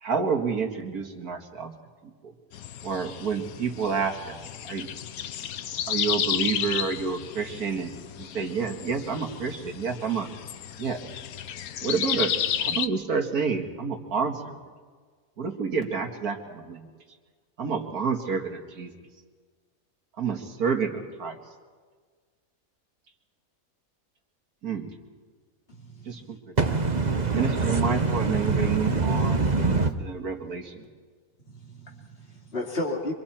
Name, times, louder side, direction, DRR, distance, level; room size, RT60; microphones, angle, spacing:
voice 1, 0.0-1.7 2.0-2.3 2.8-4.4 4.7-4.9 5.9-7.9 8.2-10.3 10.8-11.0 11.8-12.3 12.6-14.6 15.4-16.9 17.6-18.9 20.2-21.4 24.6-24.9 26.1-26.4 27.3-29.5 30.0-30.8, right 5 dB, 80° right, 3 dB, 2.3 m, -29 dB
sound 1, 2.5-12.9, left 9 dB, 75° left, 1.2 m, -32 dB
voice 2, 25.7-26.4 31.4-33.1, left 1 dB, 40° left, -1 dB, 3.2 m, -34 dB
voice 3, 26.6-29.9, right 3 dB, 35° right, 8 dB, 1.0 m, -24 dB
26.0 x 24.5 x 4.4 m, 1.5 s
omnidirectional pair, 1.6 m